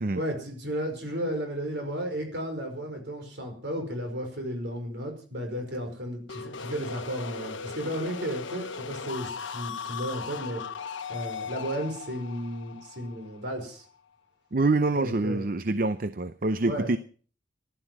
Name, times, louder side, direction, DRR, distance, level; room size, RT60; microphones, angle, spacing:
voice 1, 0.2-10.6 11.1-13.9 14.9-15.4 16.7-16.9, equal, 65° right, 5 dB, 5.2 m, -33 dB
sound 1, 6.3-14.0, left 6 dB, 85° left, 1.1 m, -38 dB
voice 2, 14.5-17.0, right 2 dB, 45° right, 13 dB, 0.6 m, -26 dB
15.5 x 12.0 x 6.0 m, 0.42 s
head